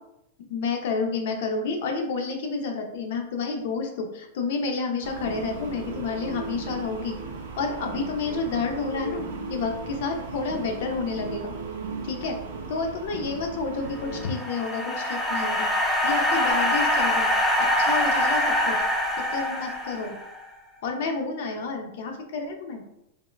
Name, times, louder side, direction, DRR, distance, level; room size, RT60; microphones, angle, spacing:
voice 1, 0.5-7.2 7.6-11.5 12.0-12.4 12.7-15.7 16.0-17.3 17.8-18.8 19.2-20.2 20.8-22.8, left 4 dB, 60° left, 3 dB, 0.5 m, -30 dB
sound 1, 5.0-14.2, right 3 dB, 85° right, 0.6 m, -36 dB
sound 2, 14.0-20.4, left 1 dB, 10° left, 0.4 m, -24 dB
3.5 x 2.1 x 2.3 m, 0.83 s
supercardioid pair, 155°, 0 cm